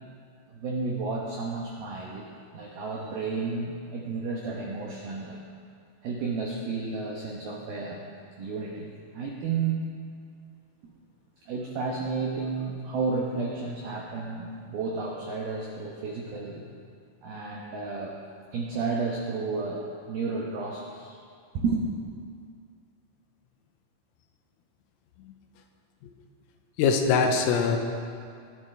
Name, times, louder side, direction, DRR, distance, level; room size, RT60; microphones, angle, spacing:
voice 1, 0.5-2.3 2.5-5.4 6.0-8.0 8.4-9.8 10.8-10.9 11.5-16.6 17.2-18.2 18.5-21.2 21.5-21.8, right 4 dB, 90° right, -1 dB, 2.1 m, -32 dB
voice 2, 26.8-27.8, left 5 dB, 85° left, 4 dB, 3.6 m, -23 dB
20.5 x 12.5 x 3.3 m, 2.3 s
omnidirectional pair, 6.0 m